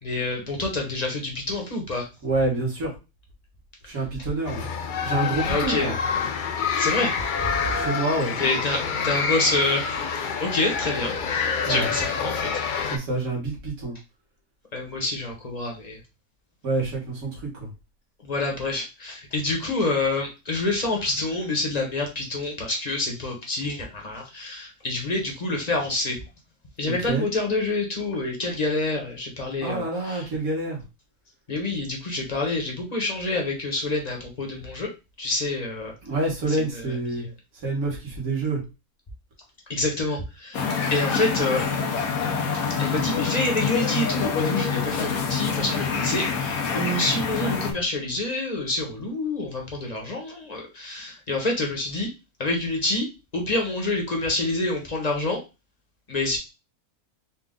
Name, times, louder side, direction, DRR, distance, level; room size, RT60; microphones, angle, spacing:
voice 1, 0.0-2.1 5.4-6.0 6.8-7.5 8.4-9.9 10.4-12.5 14.7-16.0 18.2-26.2 26.8-30.3 31.5-34.9 35.2-35.9 36.5-37.3 39.7-41.8 42.1-42.3 42.6-52.1 52.4-53.1 53.3-55.4 56.1-56.4, left 2 dB, 30° left, 0 dB, 1.0 m, -27 dB
voice 2, 2.2-2.9 3.9-4.7 5.0-5.9 7.7-8.3 11.7-11.9 12.8-13.9 16.6-17.7 26.9-27.3 29.6-30.8 36.0-37.2 37.6-38.6, right 2 dB, 70° right, -2 dB, 1.9 m, -27 dB
sound 1, 4.4-13.0, left 6 dB, 60° left, 0.5 m, -27 dB
sound 2, 40.5-47.7, left 6 dB, 80° left, 1.2 m, -26 dB
4.2 x 2.4 x 3.7 m, 0.28 s
omnidirectional pair, 1.5 m